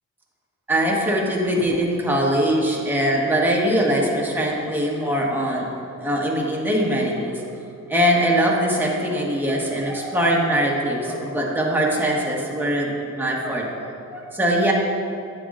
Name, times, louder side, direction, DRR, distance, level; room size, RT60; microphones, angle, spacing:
voice 1, 0.7-5.7 6.0-7.4 7.9-13.7 14.1-14.7, equal, 5° right, -3 dB, 1.4 m, -22 dB
9.5 x 7.4 x 2.6 m, 2.5 s
cardioid pair, 90°, 30 cm